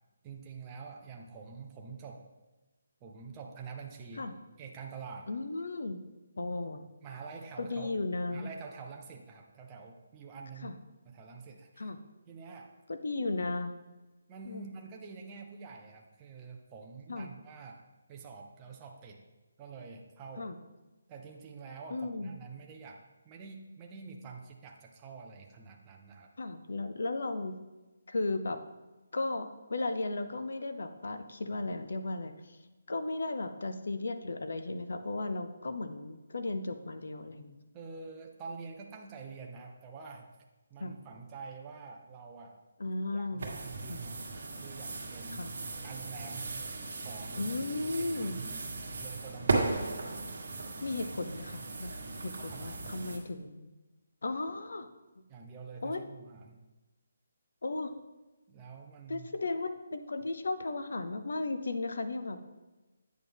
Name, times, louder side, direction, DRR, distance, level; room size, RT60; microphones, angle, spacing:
voice 1, 0.2-2.3 3.0-4.3 4.6-5.3 7.0-8.0 8.3-10.8 11.0-11.9 12.3-12.7 14.3-17.8 18.1-19.2 19.6-20.5 21.1-26.3 37.7-40.3 40.7-42.6 43.1-44.2 44.6-45.5 45.8-46.5 47.0-47.5 47.9-48.6 49.0-49.8 52.4-53.0 55.3-56.6 58.5-59.3, right 5 dB, 15° right, 0 dB, 0.5 m, -47 dB
voice 2, 5.3-6.0 6.4-6.9 7.6-8.5 10.6-10.8 11.8-12.0 12.9-13.7 14.5-14.7 17.1-17.3 20.4-20.6 21.9-22.3 26.4-27.5 28.1-28.6 29.1-32.6 32.9-37.6 40.8-40.9 42.8-43.5 43.9-44.0 45.3-45.5 47.4-48.4 50.8-53.7 54.2-54.9 55.8-56.0 57.6-57.9 59.1-62.4, left 2 dB, 65° left, 9 dB, 0.7 m, -35 dB
sound 1, 43.4-53.2, right 3 dB, 55° right, 1.6 m, -37 dB
8.9 x 6.3 x 3.5 m, 1.1 s
hypercardioid pair, 175°, 0 cm